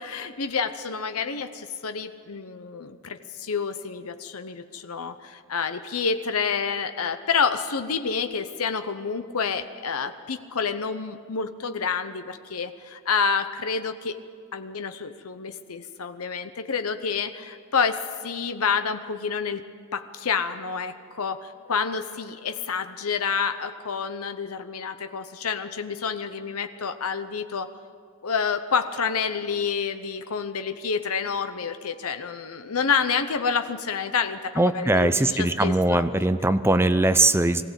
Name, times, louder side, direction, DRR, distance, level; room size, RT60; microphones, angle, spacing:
voice 1, 0.0-14.2 14.5-19.7 19.9-27.7 28.2-36.1, left 5 dB, 80° left, 9 dB, 0.8 m, -28 dB
voice 2, 34.6-37.6, right 2 dB, 10° right, 10 dB, 0.6 m, -21 dB
21.5 x 15.5 x 8.2 m, 2.1 s
head